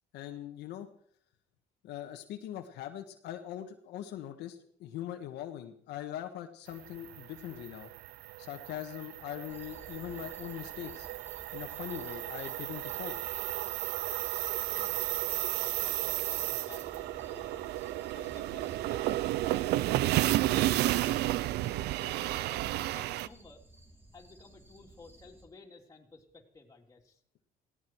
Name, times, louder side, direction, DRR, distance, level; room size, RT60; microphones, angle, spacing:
voice 1, 0.1-0.9 1.8-7.9 8.4-11.1 11.5-13.2, left 11 dB, 80° left, 5 dB, 1.5 m, -41 dB
sound 1, 6.8-23.3, right 15 dB, 80° right, 0.6 m, -32 dB
sound 2, 9.5-25.5, right 2 dB, 15° right, 3.2 m, -55 dB
voice 2, 14.6-15.1 15.5-17.7 18.1-21.4 22.0-23.6 24.1-27.2, left 3 dB, 20° left, 0 dB, 3.2 m, -55 dB
17.5 x 17.0 x 4.7 m, 0.63 s
cardioid pair, 110°, 17 cm